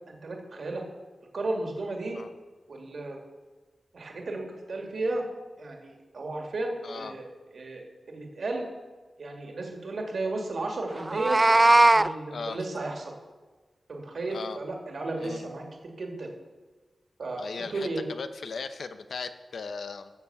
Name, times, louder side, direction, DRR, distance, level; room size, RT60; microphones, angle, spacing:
voice 1, 0.1-0.8 1.3-2.2 2.7-3.2 3.9-5.3 5.6-7.3 7.5-7.8 8.1-8.6 9.2-11.4 11.9-13.1 13.9-16.3 17.2-18.0, right 2 dB, 65° right, 1 dB, 2.6 m, -34 dB
voice 2, 6.8-7.2 12.3-12.6 14.3-14.6 15.2-15.5 17.4-20.1, left 4 dB, 80° left, 10 dB, 0.8 m, -37 dB
Meow, 11.0-12.1, right 2 dB, 20° right, 0.3 m, -19 dB
14.5 x 7.2 x 7.0 m, 1.3 s
wide cardioid pair, 105°, 0 cm